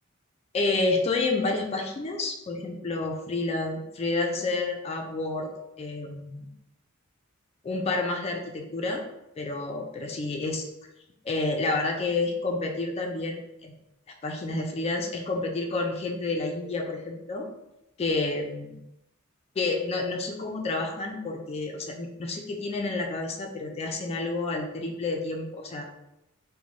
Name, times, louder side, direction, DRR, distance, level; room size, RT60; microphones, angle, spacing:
voice 1, 0.5-5.5 5.8-6.5 7.6-9.0 9.4-10.6 11.2-13.7 14.2-17.5 18.0-18.8 19.6-25.9, left 3 dB, 30° left, 2 dB, 0.3 m, -29 dB
2.5 x 2.1 x 3.1 m, 0.86 s
head